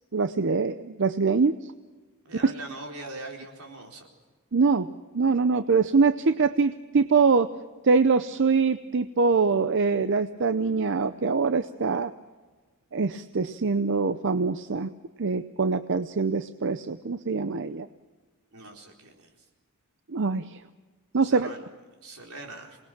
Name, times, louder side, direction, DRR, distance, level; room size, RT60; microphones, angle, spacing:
voice 1, 0.1-1.5 2.4-2.5 4.5-4.9 5.1-7.5 7.8-12.1 12.9-14.9 15.2-17.9 20.1-20.6 21.1-21.5, right 4 dB, 55° right, 11 dB, 0.6 m, -23 dB
voice 2, 2.2-4.1 18.5-19.3 21.2-21.7 22.0-22.8, right 2 dB, 80° right, 1 dB, 4.3 m, -41 dB
27.0 x 20.0 x 6.0 m, 1.3 s
head